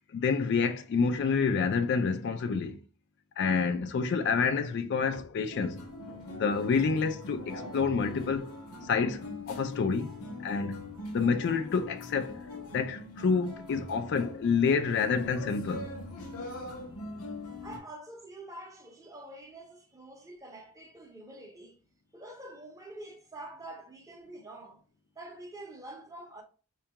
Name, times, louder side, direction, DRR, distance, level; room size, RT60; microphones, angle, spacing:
voice 1, 0.1-2.8 3.4-5.8 6.4-8.5 8.9-10.1 10.4-12.4 12.7-15.9, left 5 dB, 50° left, 0.3 m, -28 dB
sound 1, 5.5-17.8, left 2 dB, 75° left, 0.7 m, -42 dB
voice 2, 17.6-21.8 22.1-24.8 25.2-26.4, right 1 dB, 15° right, 0.6 m, -46 dB
4.4 x 2.3 x 2.8 m
head